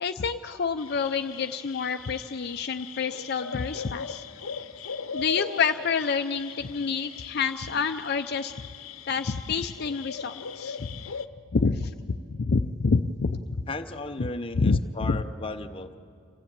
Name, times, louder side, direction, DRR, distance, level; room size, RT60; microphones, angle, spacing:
voice 1, 0.0-4.2 5.1-8.5 9.1-11.0 11.5-13.4 14.2-14.3 14.6-14.8 15.1-15.2, left 5 dB, 50° left, 7 dB, 0.5 m, -28 dB
sound 1, 0.8-11.3, left 6 dB, 80° left, 0.8 m, -39 dB
voice 2, 13.7-16.0, left 2 dB, 25° left, 6 dB, 0.8 m, -35 dB
27.5 x 15.5 x 8.7 m, 2.4 s
head